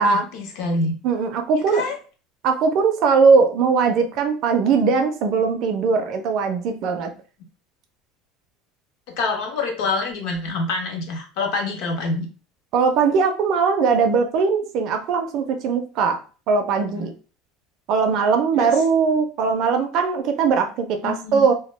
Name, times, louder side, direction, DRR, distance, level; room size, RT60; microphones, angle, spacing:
voice 1, 0.0-0.9 1.5-2.0 9.2-12.3 16.9-17.1 18.6-18.7 21.0-21.4, left 3 dB, 55° left, 3 dB, 0.6 m, -26 dB
voice 2, 1.0-1.8 2.4-7.1 12.7-16.2 16.5-17.1 17.9-21.5, right 5 dB, 40° right, 5 dB, 0.4 m, -20 dB
2.2 x 2.1 x 3.1 m, 0.36 s
cardioid pair, 175°, 0 cm